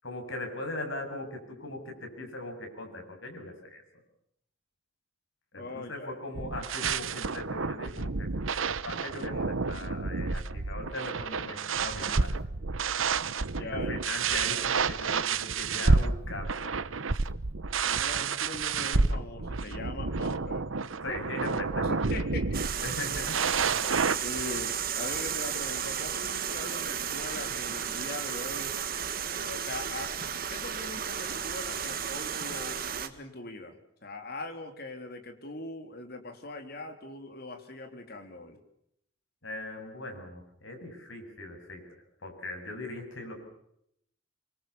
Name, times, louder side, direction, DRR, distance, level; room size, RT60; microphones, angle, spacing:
voice 1, 0.0-3.8 5.5-8.3 8.8-12.4 13.6-16.8 21.0-21.9 22.8-23.5 39.4-41.8 42.2-43.4, left 2 dB, 80° left, 4 dB, 7.6 m, -39 dB
voice 2, 5.5-6.2 13.5-14.0 17.8-20.9 21.8-22.6 24.2-28.8 29.3-30.2 30.5-38.6, left 2 dB, 50° left, 6 dB, 3.7 m, -41 dB
sound 1, 6.3-24.2, right 4 dB, 90° right, 1.0 m, -30 dB
sound 2, 22.5-33.1, right 8 dB, 45° right, 1.8 m, -33 dB
25.5 x 25.0 x 7.1 m, 0.74 s
head